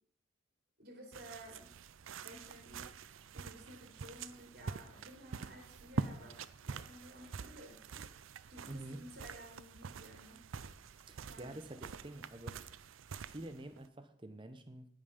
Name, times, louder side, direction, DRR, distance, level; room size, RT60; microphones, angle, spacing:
voice 1, 0.8-1.8 2.2-10.4 10.7-11.6, right 1 dB, 50° right, 1 dB, 3.5 m, -55 dB
sound 1, 1.1-13.9, right 5 dB, 75° right, 0.5 m, -46 dB
voice 2, 8.7-9.0 11.1-12.7 13.3-14.9, right 1 dB, 25° right, 9 dB, 0.9 m, -48 dB
16.5 x 5.6 x 5.2 m, 0.63 s
head